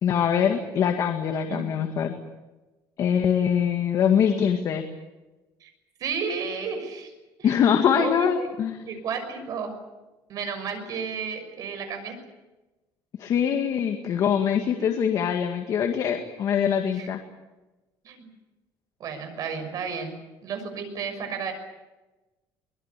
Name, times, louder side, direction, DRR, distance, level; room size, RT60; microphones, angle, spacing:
voice 1, 0.0-2.1 3.0-4.8 7.4-8.8 13.2-17.2, left 8 dB, 45° left, 5 dB, 2.0 m, -23 dB
voice 2, 6.0-7.1 7.4-7.6 7.9-8.5 8.9-9.7 10.3-12.2 17.0-17.1 18.0-18.3 19.0-20.1 20.4-21.5, right 6 dB, 50° right, 7 dB, 6.2 m, -32 dB
24.0 x 21.5 x 8.4 m, 1.1 s
cardioid pair, 155°, 8 cm